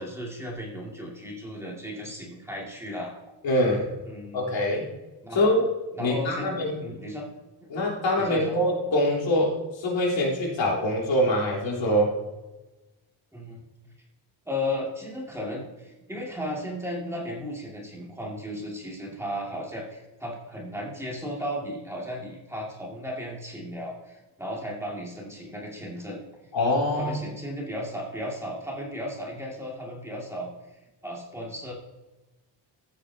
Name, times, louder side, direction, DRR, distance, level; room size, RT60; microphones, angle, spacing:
voice 1, 0.0-3.2 4.1-4.6 5.2-5.5 5.9-6.6 6.8-7.3 8.2-8.6 13.3-13.7 14.5-26.2 27.0-30.5 31.0-31.7, left 1 dB, 5° right, -3 dB, 2.2 m, -35 dB
voice 2, 3.4-3.9 4.3-4.9 5.3-5.7 6.0-6.8 7.7-12.1 26.5-27.2, left 1 dB, 80° left, -3 dB, 3.9 m, -24 dB
14.5 x 8.5 x 2.8 m, 1.1 s
wide cardioid pair, 165°, 45 cm